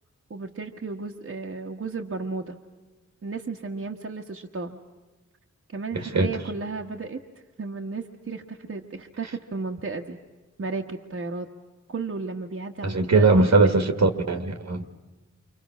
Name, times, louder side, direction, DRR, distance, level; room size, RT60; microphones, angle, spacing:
voice 1, 0.3-2.6 3.2-4.8 5.7-7.2 7.6-10.2 10.6-11.5 11.9-13.5 13.8-13.9, right 4 dB, 50° right, 1 dB, 1.4 m, -34 dB
voice 2, 6.0-6.3 12.8-14.9, right 3 dB, 70° right, 8 dB, 1.8 m, -20 dB
29.0 x 25.5 x 6.2 m, 1.2 s
wide cardioid pair, 80°, 29 cm